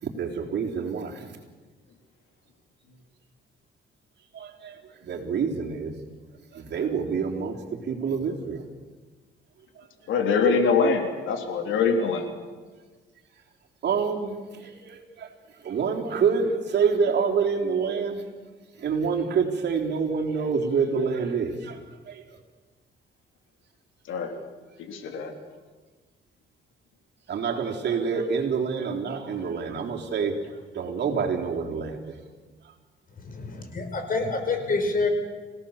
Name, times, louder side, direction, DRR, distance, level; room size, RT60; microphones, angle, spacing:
voice 1, 0.0-1.4 4.3-5.9 6.5-8.7 9.8-9.9 13.8-15.3 15.6-18.2 18.8-21.8 22.1-22.4 27.3-32.2, right 5 dB, 60° right, 0 dB, 3.8 m, -27 dB
voice 2, 10.1-12.3 24.1-24.3 24.9-25.3, left 5 dB, 80° left, 5 dB, 3.2 m, -23 dB
voice 3, 33.2-35.1, left 3 dB, 45° left, 6 dB, 5.3 m, -27 dB
26.5 x 17.5 x 7.3 m, 1.4 s
cardioid pair, 90°, 20 cm